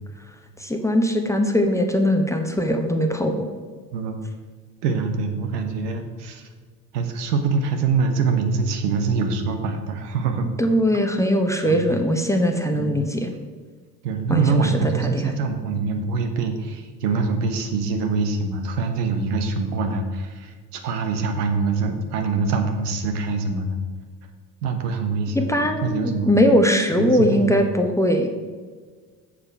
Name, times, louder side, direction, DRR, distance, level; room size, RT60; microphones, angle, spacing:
voice 1, 0.6-3.5 10.6-13.3 14.3-14.7 15.0-15.3 25.3-28.3, equal, 5° left, 4 dB, 0.8 m, -20 dB
voice 2, 4.8-6.5 6.9-10.5 11.7-11.8 12.7-12.9 14.0-23.8 24.6-26.3 26.7-27.6, right 4 dB, 70° right, 6 dB, 1.1 m, -24 dB
7.4 x 6.8 x 4.5 m, 1.5 s
figure-of-eight pair, 60°, 49 cm